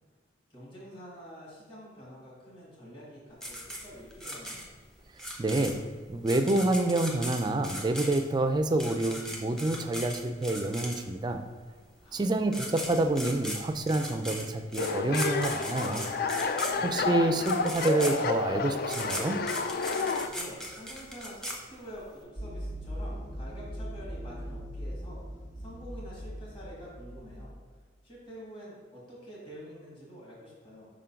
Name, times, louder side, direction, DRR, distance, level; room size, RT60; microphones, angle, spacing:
voice 1, 0.5-4.6 12.0-12.9 16.6-17.4 20.2-27.5 28.0-30.9, equal, 30° left, -6 dB, 1.7 m, -47 dB
sound 1, 3.4-11.3 12.2-12.3 12.5-22.2, equal, 5° left, 0.7 m, -38 dB
voice 2, 5.4-5.8 6.1-11.4 12.1-16.1 16.8-19.4, right 2 dB, 25° right, 7 dB, 0.4 m, -28 dB
sound 2, 14.8-20.3, left 4 dB, 55° left, 0.4 m, -30 dB
sound 3, 22.4-27.5, equal, 75° left, 1.8 m, -40 dB
5.0 x 3.8 x 5.6 m, 1.5 s
head